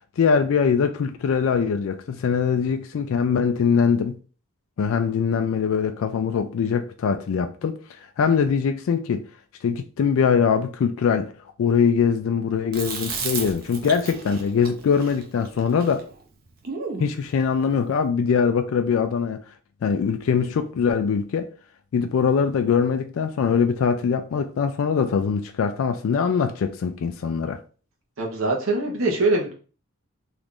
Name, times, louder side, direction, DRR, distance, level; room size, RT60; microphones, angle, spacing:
voice 1, 0.2-4.2 4.8-7.8 8.2-9.2 9.6-11.3 11.6-16.1 17.0-19.4 19.8-21.5 21.9-27.6, left 6 dB, 70° left, 0.3 m, -22 dB
Chewing mastication, 12.7-17.1, right 4 dB, 45° right, 0.6 m, -34 dB
voice 2, 28.2-29.5, right 2 dB, 70° right, 1.0 m, -23 dB
3.0 x 2.5 x 3.5 m
head